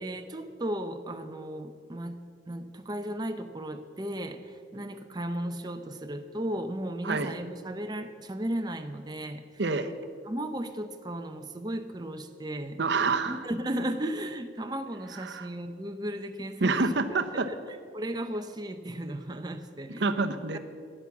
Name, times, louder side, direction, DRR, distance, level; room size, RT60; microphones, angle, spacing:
voice 1, 0.0-2.2 2.5-9.4 10.3-12.8 13.3-16.9 17.3-17.6 17.9-20.1 20.5-20.6, right 1 dB, 20° right, 7 dB, 0.7 m, -35 dB
voice 2, 9.6-9.9 12.8-13.4 15.1-15.5 16.6-17.5 20.0-20.6, right 3 dB, 70° right, 8 dB, 0.8 m, -27 dB
10.5 x 10.0 x 7.1 m, 2.2 s
head